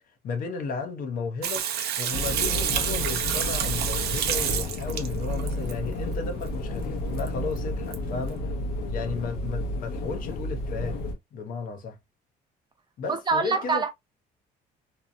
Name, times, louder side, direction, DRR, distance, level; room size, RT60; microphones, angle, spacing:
voice 1, 0.2-1.7 2.0-8.5 8.9-11.0 11.3-12.0 13.0-13.8, left 4 dB, 55° left, 0.7 m, -34 dB
Water tap faucet / Sink (filling or washing), 1.4-5.7 7.2-7.3 7.6-7.7 7.9-8.0, right 9 dB, 70° right, 0.5 m, -28 dB
sound 1, 2.1-11.1, left 1 dB, 90° left, 0.7 m, -31 dB
voice 2, 13.1-13.9, right 4 dB, 25° right, 0.6 m, -25 dB
2.7 x 2.1 x 2.5 m
cardioid pair, 110°, 17 cm